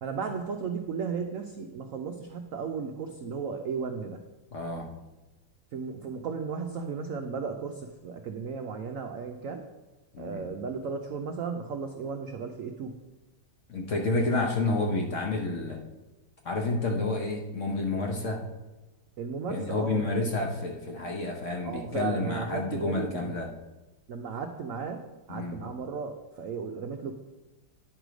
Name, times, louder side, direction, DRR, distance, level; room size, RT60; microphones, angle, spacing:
voice 1, 0.0-4.2 5.7-9.7 10.2-13.0 19.2-20.2 21.6-23.4 24.1-27.1, right 5 dB, 75° right, 5 dB, 0.7 m, -35 dB
voice 2, 4.5-4.9 10.1-10.4 13.7-15.8 16.4-18.4 19.5-23.5 25.3-25.6, left 2 dB, 55° left, 1 dB, 0.9 m, -29 dB
9.9 x 4.8 x 5.0 m, 1.1 s
omnidirectional pair, 2.0 m